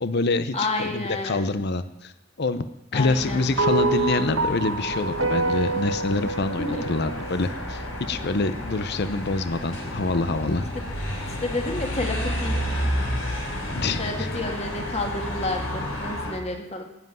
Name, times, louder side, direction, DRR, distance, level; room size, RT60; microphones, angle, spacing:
voice 1, 0.0-2.1 2.4-2.7 2.9-10.7 13.7-14.3, left 3 dB, 50° left, 12 dB, 0.7 m, -26 dB
voice 2, 0.5-1.5 2.9-3.5 6.2-6.3 6.6-6.8 11.4-12.5 14.0-16.8, left 2 dB, 30° left, 3 dB, 2.1 m, -30 dB
sound 1, 2.9-16.3, equal, 70° left, 5.3 m, -31 dB
sound 2, 3.6-8.0, right 3 dB, 75° right, 1.9 m, -27 dB
19.0 x 7.7 x 9.3 m, 0.92 s
head